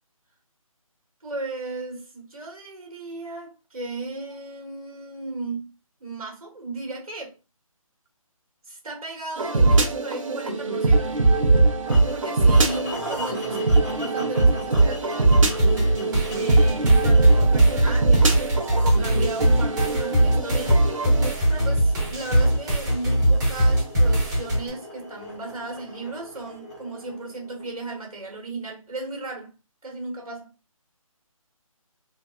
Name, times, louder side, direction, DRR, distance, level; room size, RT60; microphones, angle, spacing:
voice 1, 1.2-5.7 6.0-7.4 8.6-11.2 12.1-15.4 16.4-20.9 21.3-29.5 29.8-30.5, right 2 dB, 80° right, 1.3 m, -35 dB
sound 1, 9.4-21.3, right 3 dB, 65° right, 0.8 m, -21 dB
sound 2, 11.8-28.0, left 1 dB, 10° left, 0.5 m, -40 dB
sound 3, 15.6-24.7, right 1 dB, 30° right, 1.2 m, -21 dB
3.4 x 2.1 x 2.3 m
figure-of-eight pair, 160°, 18 cm